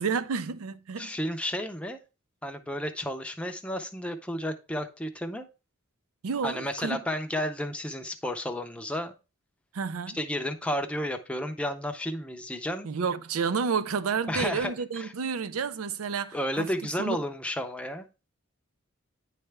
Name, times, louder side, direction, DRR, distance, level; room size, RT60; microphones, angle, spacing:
voice 1, 0.0-1.1 6.2-7.0 9.7-10.2 12.8-16.7 17.0-17.2, right 5 dB, 85° right, 0.5 m, -30 dB
voice 2, 1.0-2.0 2.4-5.4 6.4-9.1 10.1-12.9 14.3-15.1 16.3-18.1, left 1 dB, 5° left, 0.5 m, -32 dB
9.7 x 3.3 x 3.3 m
head